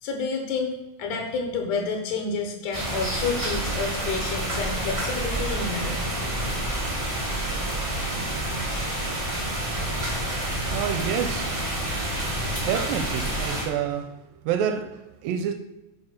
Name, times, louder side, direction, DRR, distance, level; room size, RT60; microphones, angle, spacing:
voice 1, 0.0-6.1, left 4 dB, 70° left, 2.4 m, -29 dB
sound 1, 2.7-13.6, right 1 dB, 10° right, 1.7 m, -28 dB
voice 2, 10.7-11.5 12.6-14.2 14.5-15.5, right 8 dB, 85° right, 2.4 m, -28 dB
9.1 x 5.5 x 5.9 m
omnidirectional pair, 4.0 m